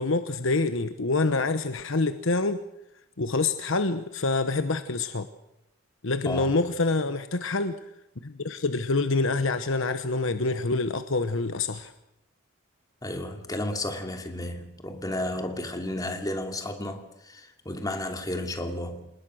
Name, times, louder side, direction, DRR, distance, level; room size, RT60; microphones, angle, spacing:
voice 1, 0.0-2.6 3.2-5.3 6.0-7.8 8.2-11.9, left 3 dB, 65° left, 1.0 m, -26 dB
voice 2, 13.0-19.1, left 1 dB, 15° left, 2.7 m, -33 dB
28.0 x 20.0 x 6.4 m
head